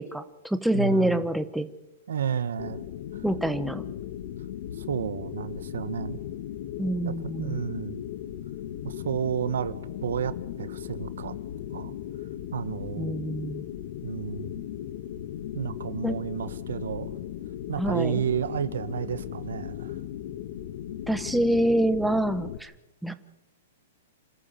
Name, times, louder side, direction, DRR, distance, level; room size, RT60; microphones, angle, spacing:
voice 1, 0.0-1.7 3.2-3.8 6.8-7.6 13.0-13.6 16.0-16.2 17.8-18.1 21.1-22.7 23.0-23.1, right 1 dB, ahead, 10 dB, 0.9 m, -26 dB
voice 2, 0.7-1.3 2.1-2.8 3.1-3.2 4.8-6.2 7.0-8.0 8.8-9.8 10.0-11.3 11.7-11.9 12.5-13.2 14.0-14.6 15.5-17.2 17.7-20.0, right 8 dB, 80° right, 14 dB, 1.4 m, -31 dB
sound 1, 2.6-22.6, left 11 dB, 55° left, 1.2 m, -37 dB
26.5 x 14.0 x 7.6 m, 0.92 s
hypercardioid pair, 150°, 0 cm